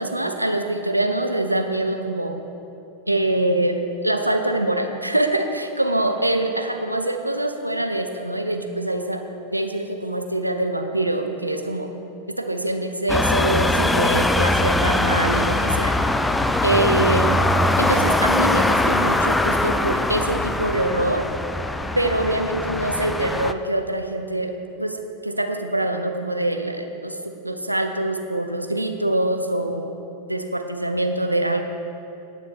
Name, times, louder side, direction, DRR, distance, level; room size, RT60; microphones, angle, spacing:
voice 1, 0.0-2.4 3.1-9.2 9.5-11.9 12.3-15.9 16.6-17.4 17.8-21.3 21.9-24.5 24.8-27.2 27.4-30.0 30.3-31.6, right 1 dB, 85° right, 5 dB, 0.8 m, -24 dB
sound 1, 13.1-23.5, left 2 dB, 5° left, 0.5 m, -21 dB
19.0 x 6.4 x 4.3 m, 2.9 s
figure-of-eight pair, 90°, 0 cm